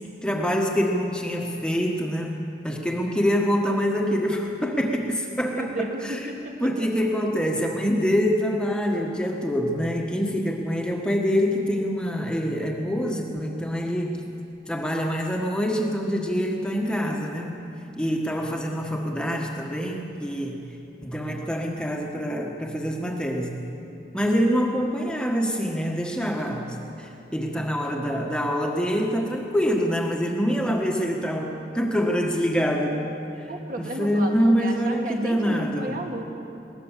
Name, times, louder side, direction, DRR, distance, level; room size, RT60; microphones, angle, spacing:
voice 1, 0.2-5.9 6.6-14.2 14.7-17.6 18.0-20.6 21.0-23.6 24.1-33.1 34.0-35.9, equal, 5° left, 1 dB, 1.5 m, -25 dB
voice 2, 5.5-6.7 33.5-36.2, right 1 dB, 50° right, 1 dB, 2.2 m, -33 dB
21.0 x 18.5 x 7.4 m, 2.7 s
head